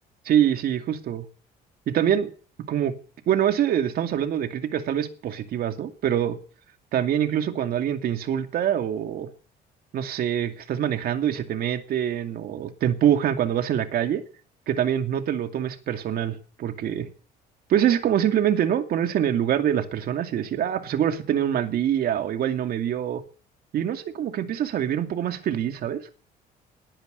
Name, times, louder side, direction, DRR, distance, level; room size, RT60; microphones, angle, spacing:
voice 1, 0.3-1.2 1.9-2.3 2.7-2.9 3.3-6.4 6.9-9.3 9.9-14.2 14.7-17.1 17.7-23.2 23.7-26.0, right 10 dB, 65° right, 2.4 m, -25 dB
20.0 x 10.5 x 6.8 m
cardioid pair, 110°, 17 cm